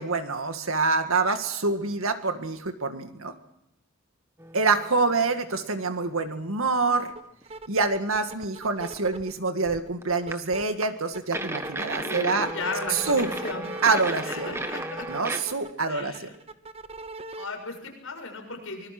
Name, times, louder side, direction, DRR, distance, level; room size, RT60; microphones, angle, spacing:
voice 1, 0.0-3.4 4.5-7.1 7.7-12.5 12.9-13.3 13.8-14.5 15.1-16.2, right 4 dB, 80° right, 7 dB, 2.0 m, -26 dB
sound 1, 4.4-5.7 6.1-6.2 7.0-7.1 7.4-7.5 9.0-9.1 10.0-10.3 10.8-10.9 11.3-15.4, right 1 dB, 10° right, 1.4 m, -35 dB
sound 2, 7.1-7.2 7.5-9.3 9.6-10.6 11.0-17.4, right 2 dB, 30° right, 1.0 m, -40 dB
voice 2, 12.0-13.7 14.2-15.2 15.9-16.3 17.4-18.9, left 3 dB, 70° left, 2 dB, 6.9 m, -36 dB
25.0 x 20.5 x 6.1 m, 0.82 s
head